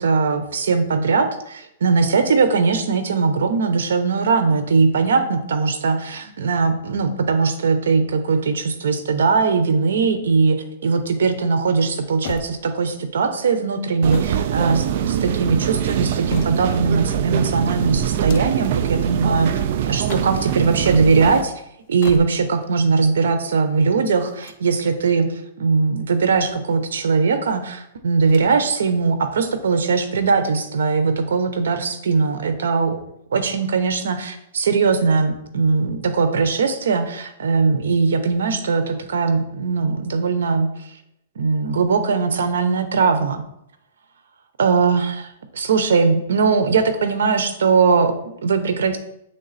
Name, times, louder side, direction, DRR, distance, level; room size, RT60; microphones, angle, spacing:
voice 1, 0.0-19.6 19.9-21.5 21.9-25.3 25.6-33.0 33.3-40.7 41.4-43.4 44.6-49.0, right 4 dB, 85° right, 9 dB, 0.8 m, -20 dB
sound 1, 12.2-13.0 13.8-15.2 15.9-16.9 18.1-18.7 19.9-20.6 21.8-22.7 24.2-25.1 26.0-27.0 28.2-28.8 29.1-29.2 30.2-30.9, left 7 dB, 45° left, 0.6 m, -37 dB
sound 2, 14.0-21.4, right 10 dB, 50° right, 0.4 m, -23 dB
7.9 x 3.6 x 4.1 m, 0.79 s
hypercardioid pair, 155°, 0 cm